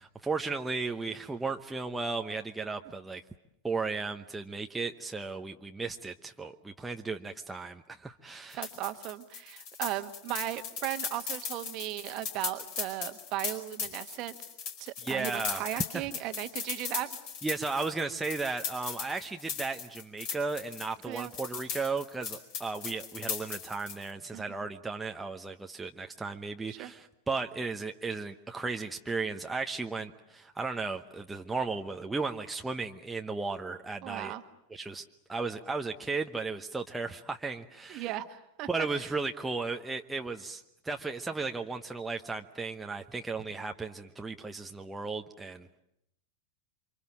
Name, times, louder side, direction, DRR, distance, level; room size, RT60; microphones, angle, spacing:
voice 1, 0.0-3.2 3.6-8.7 15.0-16.0 17.4-34.3 34.7-38.1 38.7-45.8, right 4 dB, 10° right, 4 dB, 1.0 m, -35 dB
sound 1, 8.5-24.1, left 6 dB, 45° left, 4.8 m, -38 dB
voice 2, 8.5-14.4 14.8-17.2 21.1-21.3 24.3-24.6 26.7-26.9 34.0-34.4 37.9-38.7 39.0-39.1, right 14 dB, 40° right, 9 dB, 1.5 m, -37 dB
29.0 x 25.5 x 7.5 m, 0.79 s
figure-of-eight pair, 90°, 0 cm